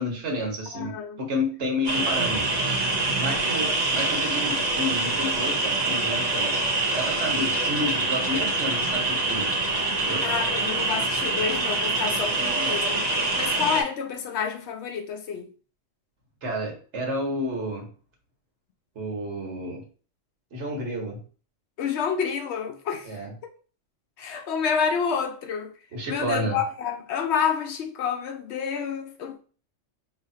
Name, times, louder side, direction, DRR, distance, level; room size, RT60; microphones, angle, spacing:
voice 1, 0.0-2.6 3.2-6.6 6.9-9.5 10.0-10.2 16.4-17.9 18.9-19.8 20.5-21.2 23.0-23.3 25.9-26.6, left 1 dB, 70° right, 1.4 m, -30 dB
voice 2, 0.7-1.2 10.2-15.5 21.8-23.2 24.2-25.7 26.1-29.4, left 7 dB, 70° left, 0.8 m, -29 dB
sound 1, 1.8-13.8, right 2 dB, 40° right, 0.8 m, -25 dB
5.0 x 2.8 x 2.7 m
omnidirectional pair, 1.2 m